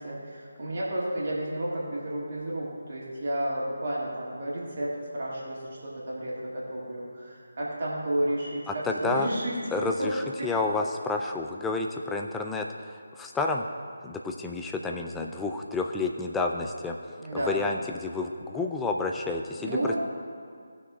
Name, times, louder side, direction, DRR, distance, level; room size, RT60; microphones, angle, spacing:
voice 1, 0.0-10.5 17.2-17.6 19.6-20.0, right 1 dB, 45° right, -5 dB, 2.1 m, -32 dB
voice 2, 8.7-9.3 9.7-13.6 14.0-17.0 17.3-19.8, left 3 dB, 5° left, 2 dB, 0.4 m, -30 dB
17.5 x 6.4 x 2.4 m, 2.2 s
figure-of-eight pair, 155°, 0 cm